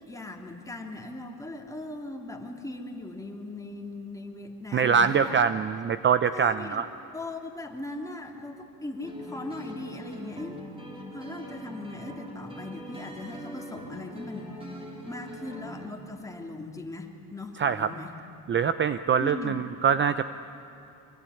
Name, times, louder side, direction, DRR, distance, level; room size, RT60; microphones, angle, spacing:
voice 1, 0.1-5.4 6.3-6.9 7.1-10.6 11.1-14.5 15.1-18.1 19.2-19.6, left 2 dB, 10° left, 2 dB, 3.0 m, -39 dB
voice 2, 4.7-6.9 17.6-17.9 18.5-20.2, right 7 dB, 30° right, 12 dB, 0.7 m, -24 dB
sound 1, 9.0-15.9, equal, 15° right, 5.0 m, -42 dB
24.5 x 22.0 x 9.9 m, 3.0 s
cardioid pair, 115°, 37 cm